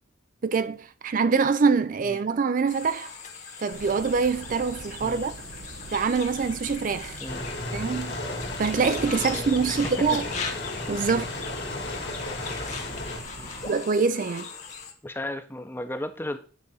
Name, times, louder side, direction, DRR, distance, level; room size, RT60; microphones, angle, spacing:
voice 1, 0.4-3.1 3.6-5.3 5.9-7.2 7.7-8.2 8.6-10.2 10.9-11.2 13.6-14.5, right 5 dB, 45° right, 0.4 m, -24 dB
sound 1, 2.7-14.9, left 5 dB, 40° left, 1.5 m, -39 dB
sound 2, 3.7-13.7, right 2 dB, 80° right, 0.8 m, -44 dB
sound 3, 7.3-13.2, left 2 dB, 65° left, 2.0 m, -34 dB
voice 2, 9.2-9.9 13.4-13.7 15.0-16.4, left 1 dB, 10° left, 0.8 m, -35 dB
9.6 x 4.0 x 5.5 m
head